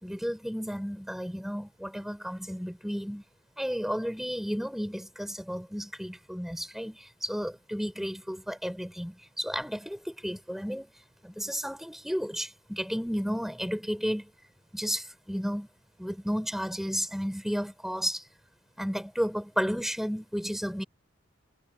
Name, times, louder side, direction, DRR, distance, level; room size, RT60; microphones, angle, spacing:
voice 1, 0.0-3.2 3.6-10.9 11.2-14.3 14.7-15.7 16.0-18.2 18.8-20.8, equal, ahead, 6.9 m, -33 dB
head